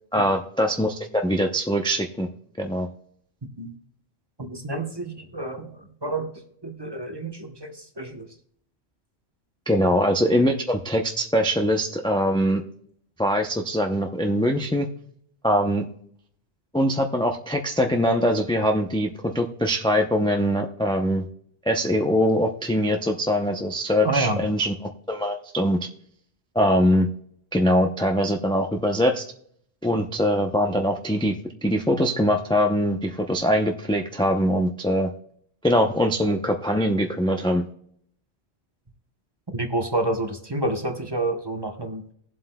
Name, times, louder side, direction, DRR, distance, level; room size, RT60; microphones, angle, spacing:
voice 1, 0.1-2.3 2.6-2.9 9.7-12.6 13.2-14.9 15.4-15.8 16.7-21.3 21.7-24.7 25.1-25.8 26.5-27.1 27.5-29.2 29.8-31.4 31.6-35.1 35.6-37.6, equal, 5° left, 3 dB, 0.5 m, -22 dB
voice 2, 4.4-8.4 24.0-24.4 39.5-42.0, right 2 dB, 25° right, 5 dB, 0.9 m, -29 dB
19.5 x 7.6 x 2.2 m, 0.67 s
omnidirectional pair, 1.1 m